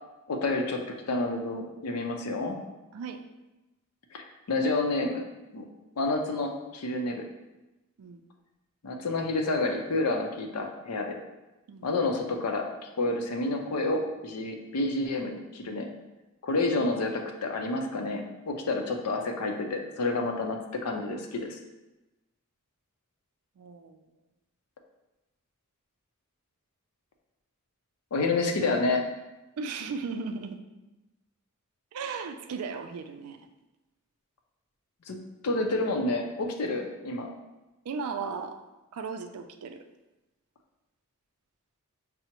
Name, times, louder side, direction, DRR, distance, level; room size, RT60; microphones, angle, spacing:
voice 1, 0.3-0.8 1.1-2.6 4.1-5.2 5.5-5.6 6.0-7.3 8.8-11.2 11.8-12.7 13.0-15.9 16.4-21.6 28.1-29.0 35.1-37.3, left 2 dB, 80° left, 3 dB, 0.5 m, -29 dB
voice 2, 23.6-24.0 29.6-30.6 31.9-33.5 37.9-38.6 38.9-39.8, right 5 dB, 75° right, 7 dB, 0.4 m, -36 dB
5.6 x 2.0 x 2.9 m, 1.0 s
head